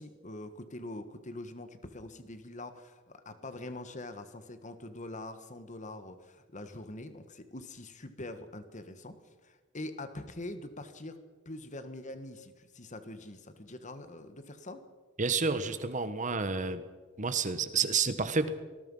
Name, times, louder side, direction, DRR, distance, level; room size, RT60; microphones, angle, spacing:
voice 1, 0.0-11.2 11.4-14.8, left 2 dB, 40° left, 9 dB, 1.6 m, -44 dB
voice 2, 15.2-16.8 17.2-18.5, right 4 dB, 40° right, 11 dB, 1.4 m, -30 dB
25.5 x 19.5 x 5.6 m, 1.4 s
head